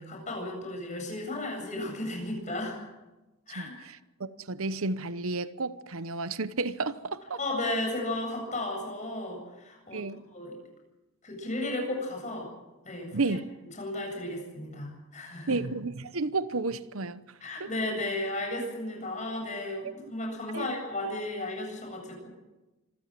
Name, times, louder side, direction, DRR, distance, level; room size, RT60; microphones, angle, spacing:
voice 1, 0.0-2.8 3.5-3.7 7.4-10.6 11.2-12.5 12.8-13.4 13.8-15.6 17.4-22.3, left 1 dB, 35° left, 7.7 m, -34 dB
voice 2, 4.2-7.4 9.9-10.2 13.1-13.4 15.5-17.2 17.6-17.7 20.5-20.7, right 3 dB, 75° right, 0.9 m, -31 dB
26.0 x 15.0 x 7.6 m
head